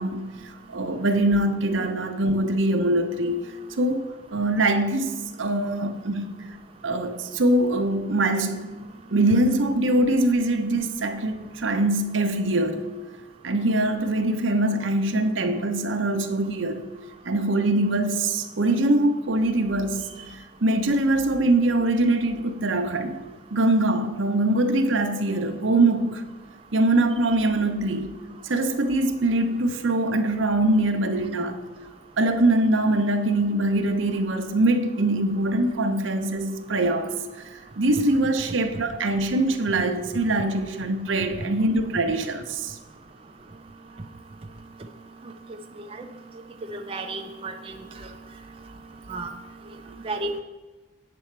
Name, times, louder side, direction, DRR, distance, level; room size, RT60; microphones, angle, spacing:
voice 1, 0.0-3.4 3.8-6.3 6.8-8.7 9.1-12.8 13.4-16.9 17.2-20.1 20.6-23.2 23.5-26.2 26.7-28.1 28.4-31.6 32.2-37.1 37.5-42.8 49.9-50.0, right 1 dB, 75° right, 6 dB, 0.8 m, -23 dB
voice 2, 46.7-48.1 49.1-49.3 50.0-50.4, right 2 dB, 30° right, 3 dB, 0.5 m, -33 dB
8.5 x 7.0 x 4.5 m, 1.2 s
head